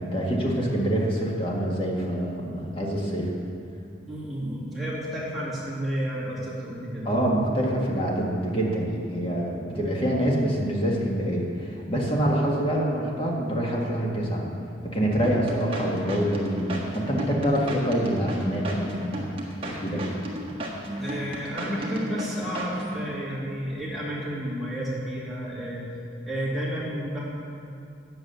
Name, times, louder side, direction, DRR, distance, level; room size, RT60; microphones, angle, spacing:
voice 1, 0.0-3.3 7.0-14.5 14.8-20.0, equal, 25° left, -3 dB, 1.7 m, -26 dB
voice 2, 4.1-7.1 21.0-25.9 26.2-27.2, equal, ahead, -8 dB, 2.5 m, -31 dB
sound 1, 15.2-23.0, right 1 dB, 30° right, 1.5 m, -34 dB
9.6 x 7.9 x 6.9 m, 2.5 s
head